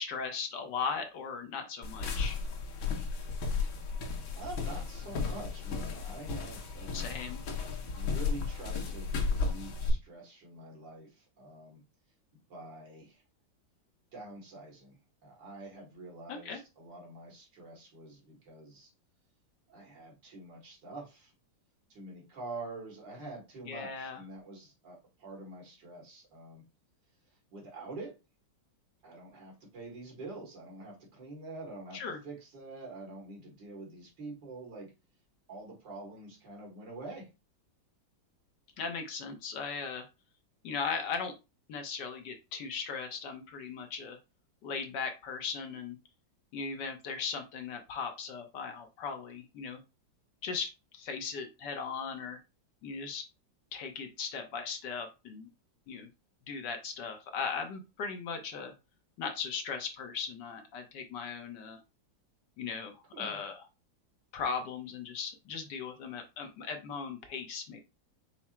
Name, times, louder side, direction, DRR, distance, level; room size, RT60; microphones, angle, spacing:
voice 1, 0.0-2.4 6.9-7.4 16.3-16.6 23.7-24.2 31.9-32.2 38.8-40.1 40.6-41.3 41.7-44.2 44.6-46.0 46.5-49.8 50.4-52.4 52.8-53.2 53.7-55.5 55.9-56.1 56.5-58.7 59.2-61.8 62.6-63.6 64.3-67.8, left 5 dB, 70° left, 5 dB, 1.3 m, -38 dB
sound 1, 1.8-9.9, left 4 dB, 90° left, 1.7 m, -34 dB
voice 2, 4.4-7.2 7.8-11.8 12.5-13.2 14.1-18.9 19.7-21.3 21.9-26.6 27.5-28.2 29.0-34.9 35.5-37.3 63.1-63.4, right 2 dB, 65° right, -1 dB, 2.4 m, -46 dB
5.8 x 2.0 x 4.3 m, 0.27 s
omnidirectional pair, 2.1 m